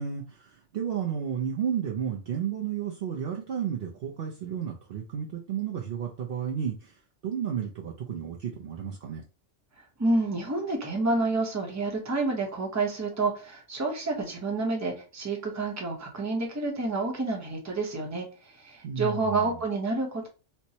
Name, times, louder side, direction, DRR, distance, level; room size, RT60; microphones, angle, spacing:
voice 1, 0.0-9.2 18.8-19.6, right 8 dB, 65° right, -1 dB, 0.7 m, -32 dB
voice 2, 10.0-20.3, right 3 dB, 15° right, 0 dB, 0.7 m, -29 dB
4.4 x 2.1 x 2.7 m, 0.34 s
omnidirectional pair, 1.2 m